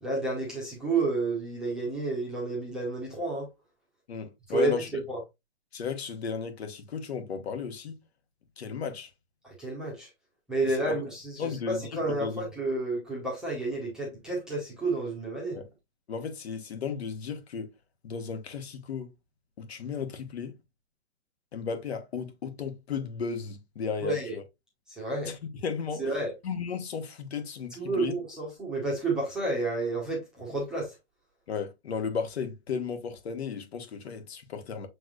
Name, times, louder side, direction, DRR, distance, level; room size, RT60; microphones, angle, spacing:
voice 1, 0.0-3.5 4.5-4.8 5.1-5.2 9.4-10.1 10.5-15.6 24.0-24.3 25.0-25.3 26.0-26.3 27.8-30.9, right 2 dB, ahead, 0.8 m, -30 dB
voice 2, 4.1-4.9 5.7-8.0 8.6-9.1 10.7-11.0 11.4-12.4 15.5-15.7 16.1-17.7 18.0-19.1 19.6-20.6 21.5-24.4 25.2-26.1 26.4-28.2 31.5-34.9, left 6 dB, 65° left, 1.4 m, -34 dB
6.6 x 3.4 x 2.3 m
hypercardioid pair, 165°, 34 cm